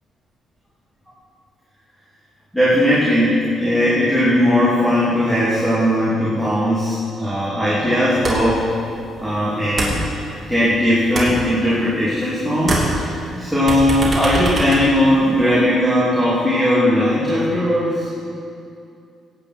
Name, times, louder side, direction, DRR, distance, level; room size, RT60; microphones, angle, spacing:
voice 1, 2.5-8.6 9.2-18.1, left 1 dB, ahead, -9 dB, 2.9 m, -18 dB
sound 1, 8.2-8.6 8.9-10.7 11.0-12.3 12.6-15.6, right 2 dB, 30° right, 3.0 m, -25 dB
16.5 x 8.8 x 4.5 m, 2.5 s
cardioid pair, 90°, 0 cm